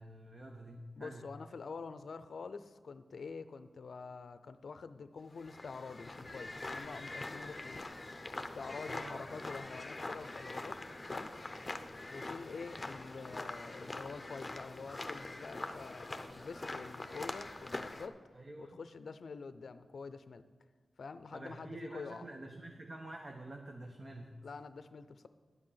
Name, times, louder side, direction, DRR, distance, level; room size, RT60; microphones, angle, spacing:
voice 1, 0.0-1.3 8.8-9.3 18.3-18.8 21.3-24.4, right 1 dB, 40° right, 2 dB, 1.0 m, -48 dB
voice 2, 1.0-7.8 8.5-10.8 11.1-11.3 12.1-18.2 18.6-20.4 21.0-22.2 24.4-25.3, left 4 dB, 70° left, 12 dB, 0.5 m, -46 dB
sound 1, 5.3-18.1, left 2 dB, 25° left, 0.8 m, -44 dB
11.0 x 7.9 x 5.7 m, 1.5 s
wide cardioid pair, 75°, 0 cm